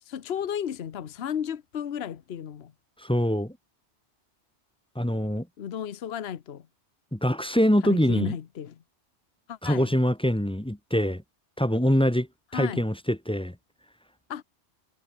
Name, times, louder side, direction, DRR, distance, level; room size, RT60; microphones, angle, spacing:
voice 1, 0.1-2.7 5.6-6.7 7.8-8.8 9.5-9.9 12.5-12.9 14.3-14.4, left 9 dB, 65° left, 1.1 m, -34 dB
voice 2, 3.0-3.5 5.0-5.5 7.1-8.3 9.6-11.2 11.6-12.3 12.5-13.5, equal, 5° left, 1.0 m, -24 dB
omnidirectional pair, 1.2 m